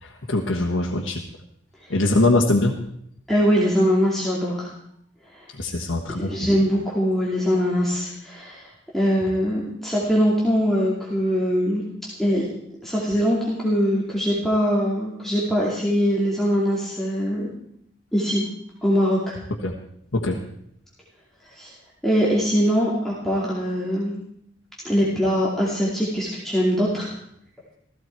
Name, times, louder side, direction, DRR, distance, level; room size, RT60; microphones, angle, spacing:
voice 1, 0.0-1.2 1.9-2.8 5.5-6.4 19.6-19.7 20.1-20.4, left 2 dB, 75° left, 0 dB, 1.4 m, -22 dB
voice 2, 3.3-4.7 5.3-5.4 6.3-11.8 12.2-12.4 12.8-17.5 18.1-18.4 18.8-19.4 21.5-21.7 22.0-24.2 24.8-27.1, equal, ahead, -6 dB, 2.6 m, -22 dB
16.0 x 14.5 x 4.6 m, 0.70 s
head